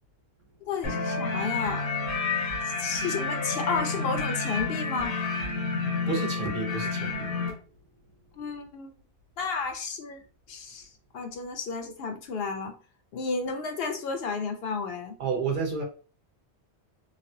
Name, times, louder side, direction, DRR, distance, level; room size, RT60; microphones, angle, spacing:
voice 1, 0.7-1.9 2.7-5.2 8.4-8.9 9.4-10.2 10.5-10.9 11.1-12.7 13.1-15.1, left 4 dB, 65° left, 0.7 m, -32 dB
sound 1, 0.8-7.5, left 4 dB, 90° left, 1.1 m, -30 dB
voice 2, 6.1-7.3 15.2-15.8, right 5 dB, 55° right, 0.8 m, -30 dB
3.2 x 2.2 x 2.6 m
omnidirectional pair, 1.1 m